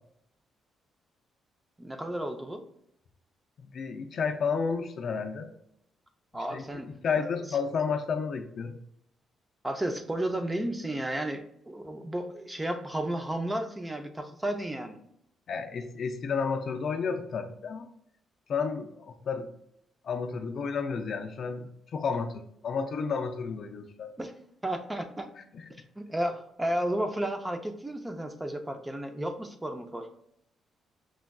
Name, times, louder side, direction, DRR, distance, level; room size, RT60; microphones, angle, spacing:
voice 1, 1.8-2.6 6.3-6.9 7.2-7.4 9.6-15.0 24.2-24.3 24.6-25.3 26.0-30.1, right 1 dB, 15° right, 6 dB, 0.5 m, -33 dB
voice 2, 3.7-5.5 6.5-8.8 15.5-17.9 18.5-19.5 20.0-24.1 25.5-25.6, left 5 dB, 60° left, 6 dB, 0.4 m, -31 dB
6.1 x 2.3 x 2.2 m, 0.74 s
cardioid pair, 90°, 0 cm